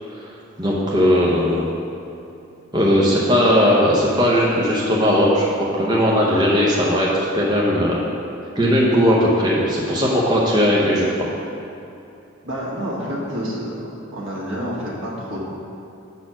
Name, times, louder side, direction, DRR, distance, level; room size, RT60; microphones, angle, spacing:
voice 1, 0.6-1.7 2.7-5.4 5.8-8.0 8.5-11.3, equal, 20° right, -5 dB, 0.8 m, -18 dB
voice 2, 12.4-13.7 14.1-15.4, equal, 75° right, -5 dB, 1.7 m, -28 dB
7.0 x 4.3 x 5.9 m, 2.7 s
head